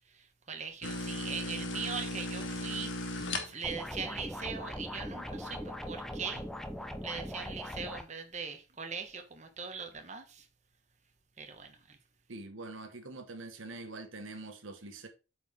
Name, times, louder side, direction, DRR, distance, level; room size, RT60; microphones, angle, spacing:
voice 1, 0.1-2.9 3.4-6.4 7.0-10.5 11.4-12.0, right 5 dB, 35° right, 1.1 m, -41 dB
sound 1, 0.8-3.9, left 2 dB, 70° left, 1.2 m, -36 dB
sound 2, 3.6-8.0, equal, ahead, 0.5 m, -40 dB
voice 2, 12.3-15.1, right 2 dB, 80° right, 1.4 m, -44 dB
8.0 x 4.7 x 3.5 m
head